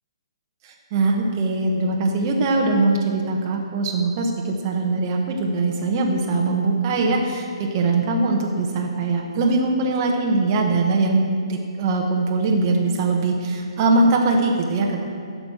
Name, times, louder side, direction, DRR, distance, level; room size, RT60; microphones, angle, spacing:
voice 1, 0.6-15.0, right 3 dB, 35° right, 0 dB, 1.1 m, -21 dB
13.0 x 5.2 x 6.2 m, 2.3 s
hypercardioid pair, 150°, 3 cm